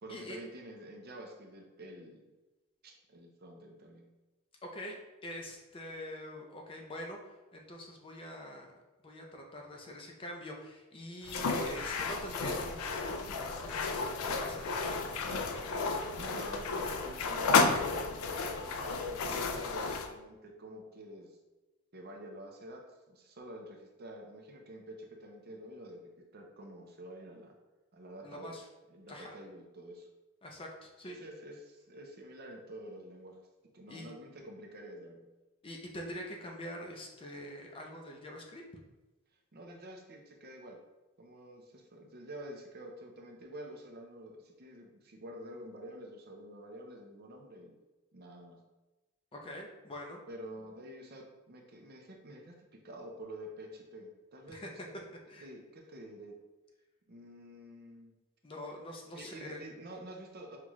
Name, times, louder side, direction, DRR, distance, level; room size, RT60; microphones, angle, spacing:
voice 1, 0.0-2.3 2.8-4.1 16.0-21.4 21.9-27.5 27.9-28.6 28.9-30.1 31.1-33.4 33.7-35.3 39.5-40.8 41.2-47.8 48.1-48.6 50.3-54.8 55.4-56.4 57.1-58.1 59.1-60.6, right 1 dB, 45° right, 1 dB, 0.6 m, -48 dB
voice 2, 4.6-7.2 7.5-8.8 9.0-15.9 28.2-28.6 29.1-29.3 30.4-31.2 33.9-34.1 35.6-38.6 49.3-50.2 54.5-54.7 55.3-55.5 58.4-59.6, left 1 dB, 25° left, 1 dB, 0.5 m, -45 dB
sound 1, 11.2-20.1, left 4 dB, 80° left, 0.4 m, -32 dB
5.7 x 2.4 x 3.0 m, 1.1 s
head